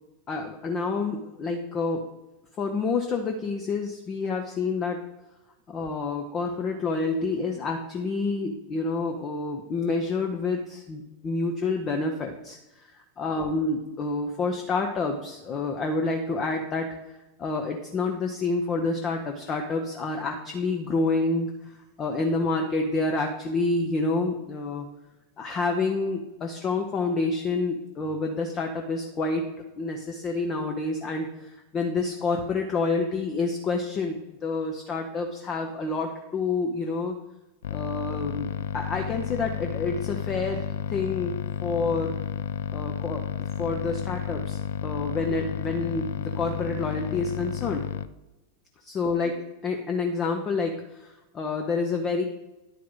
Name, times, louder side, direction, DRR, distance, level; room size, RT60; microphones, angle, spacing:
voice 1, 0.3-2.1 2.6-5.0 5.7-16.9 17.4-24.9 25.4-29.5 29.8-37.2 37.7-41.4 41.6-42.2 42.7-47.9 48.8-52.2, left 3 dB, 25° left, 3 dB, 0.7 m, -28 dB
sound 1, 37.6-48.1, left 9 dB, 60° left, 0.3 m, -32 dB
10.5 x 4.6 x 3.9 m, 1.0 s
figure-of-eight pair, 90°, 0 cm